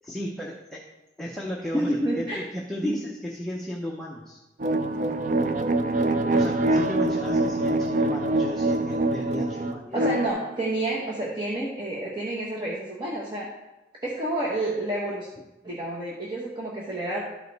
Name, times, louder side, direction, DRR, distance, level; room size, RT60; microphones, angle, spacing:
voice 1, 0.0-0.8 1.2-4.4 6.3-10.1, equal, ahead, -3 dB, 0.7 m, -35 dB
voice 2, 1.7-2.4 2.8-3.0 9.9-13.5 14.0-15.3 15.6-17.2, right 1 dB, 25° right, -5 dB, 1.1 m, -29 dB
sound 1, 4.6-10.3, right 2 dB, 45° right, 0.5 m, -24 dB
12.0 x 5.0 x 4.0 m, 1.0 s
head